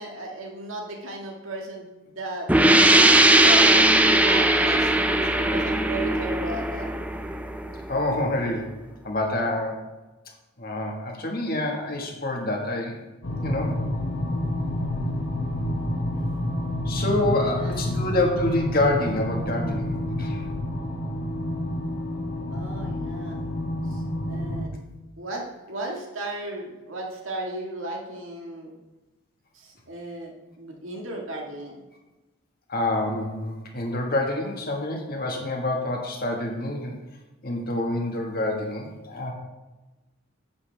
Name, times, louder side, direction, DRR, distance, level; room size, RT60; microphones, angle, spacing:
voice 1, 0.0-3.9 4.2-6.9 17.4-18.0 22.5-23.4 23.9-24.7 25.2-28.7 29.5-31.8, right 1 dB, 80° right, 0 dB, 1.8 m, -35 dB
sound 1, 2.5-8.0, right 1 dB, 5° right, 0.4 m, -19 dB
voice 2, 7.9-8.7 9.0-9.9 10.6-13.0 13.4-13.8 16.9-20.4 32.7-37.0 37.4-39.3, left 2 dB, 45° left, 1 dB, 1.6 m, -27 dB
sound 2, 13.2-24.6, left 1 dB, 70° left, 1.3 m, -29 dB
10.0 x 8.3 x 3.4 m, 1.1 s
head